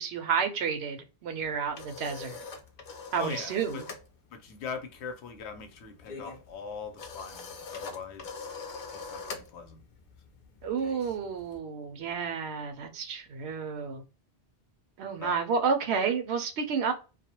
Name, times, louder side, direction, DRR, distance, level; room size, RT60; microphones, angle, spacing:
voice 1, 0.0-2.4 3.1-3.9 10.6-14.0 15.0-16.9, right 6 dB, 80° right, 0.9 m, -30 dB
sound 1, 1.4-4.1 4.3-4.6 4.9-11.6, left 4 dB, 55° left, 0.6 m, -43 dB
voice 2, 3.2-3.8 4.3-8.5 8.9-9.8 15.2-15.4, left 5 dB, 80° left, 0.9 m, -41 dB
2.3 x 2.1 x 2.8 m
omnidirectional pair, 1.1 m